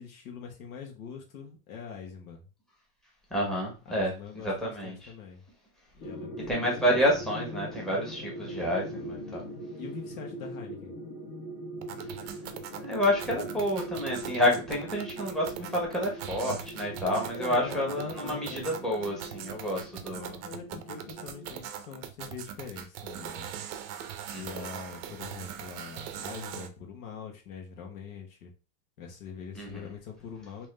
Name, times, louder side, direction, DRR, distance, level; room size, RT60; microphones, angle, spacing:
voice 1, 0.0-2.4 3.8-5.4 6.0-7.2 9.8-10.9 17.3-18.7 20.4-23.5 24.4-28.5 29.0-30.7, left 6 dB, 85° left, 2 dB, 1.4 m, -43 dB
voice 2, 3.3-4.1 4.4-5.1 6.5-9.4 12.7-20.4 24.3-24.7 29.5-29.9, equal, ahead, -2 dB, 1.1 m, -29 dB
sound 1, 6.0-21.6, right 1 dB, 45° left, 1.2 m, -41 dB
sound 2, 11.8-26.7, right 10 dB, 45° right, 0.6 m, -41 dB
3.6 x 2.9 x 3.3 m, 0.32 s
supercardioid pair, 150°, 41 cm